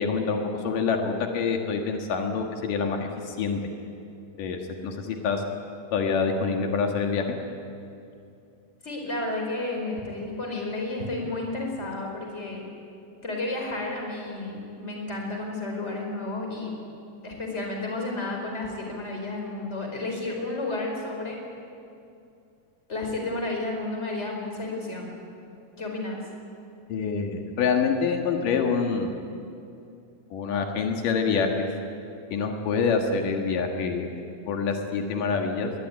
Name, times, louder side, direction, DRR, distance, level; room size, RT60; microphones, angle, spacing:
voice 1, 0.0-3.6 4.4-5.4 5.9-7.4 26.9-29.2 30.3-31.7 32.3-35.7, left 5 dB, 85° left, 3 dB, 3.4 m, -26 dB
voice 2, 8.8-12.6 13.2-16.7 17.2-21.4 22.9-25.2 25.8-26.2, left 2 dB, 20° left, 1 dB, 4.8 m, -32 dB
22.0 x 21.0 x 9.7 m, 2.6 s
omnidirectional pair, 3.7 m